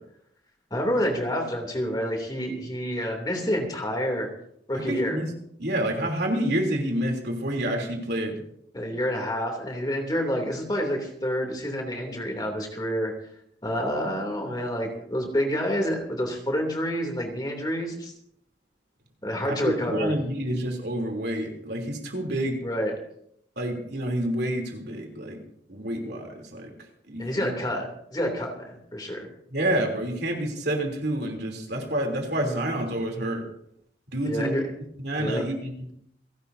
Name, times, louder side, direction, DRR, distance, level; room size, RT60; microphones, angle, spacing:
voice 1, 0.7-4.3 4.7-5.2 8.7-13.1 13.6-18.1 19.2-20.2 22.6-22.9 27.2-29.3 34.2-34.6 35.2-35.4, equal, 20° left, 2 dB, 2.9 m, -28 dB
voice 2, 4.7-5.3 5.6-8.4 19.4-22.6 23.6-25.4 25.7-26.7 27.1-27.5 29.5-33.4 34.1-34.6 35.0-35.9, right 1 dB, 60° right, 2 dB, 3.3 m, -28 dB
29.0 x 12.0 x 2.8 m, 0.70 s
head